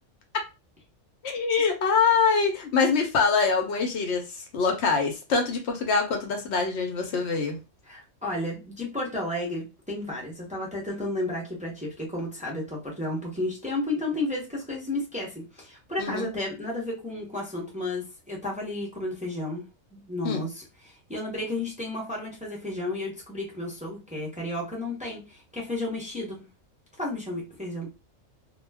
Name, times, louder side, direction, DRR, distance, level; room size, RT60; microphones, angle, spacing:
voice 1, 1.2-4.3 4.5-7.6 16.0-16.3 20.2-20.5, left 5 dB, 60° left, 4 dB, 0.8 m, -24 dB
voice 2, 7.9-26.5 27.0-27.9, left 2 dB, 10° right, -3 dB, 0.5 m, -32 dB
2.2 x 2.2 x 3.3 m, 0.27 s
omnidirectional pair, 1.4 m